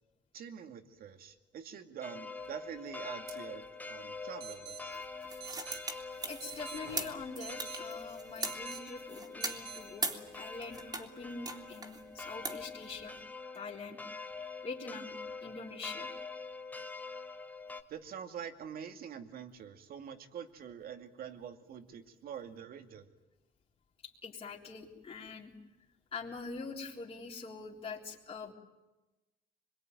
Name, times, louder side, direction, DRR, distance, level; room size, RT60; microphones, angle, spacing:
voice 1, 0.3-5.0 17.9-23.1, right 8 dB, 60° right, 7 dB, 2.3 m, -45 dB
sound 1, 2.0-17.8, left 4 dB, 10° left, 1.4 m, -45 dB
sound 2, 3.3-3.4 3.6-3.7 4.4-4.8 5.4-5.8 6.4-7.8 8.4-8.8 9.4-9.8, right 9 dB, 85° right, 4.7 m, -47 dB
sound 3, 4.9-11.1 11.5-13.2, right 3 dB, 25° right, 2.9 m, -40 dB
voice 2, 6.3-13.2 13.5-14.0 14.6-16.1 24.0-25.5 26.1-28.5, left 4 dB, 35° left, -2 dB, 3.8 m, -44 dB
25.5 x 22.5 x 9.4 m, 1.1 s
cardioid pair, 110°, 17 cm